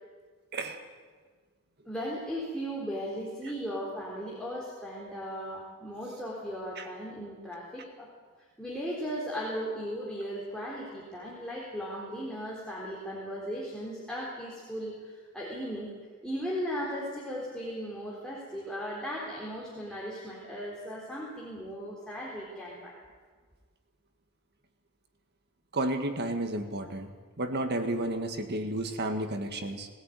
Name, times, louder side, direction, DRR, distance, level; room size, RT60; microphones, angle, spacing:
voice 1, 1.9-8.1 8.6-15.9 16.2-22.9, equal, 5° left, -5 dB, 3.7 m, -37 dB
voice 2, 25.7-27.1 27.4-29.9, right 1 dB, 50° right, 6 dB, 1.9 m, -32 dB
20.5 x 16.0 x 9.2 m, 1.5 s
head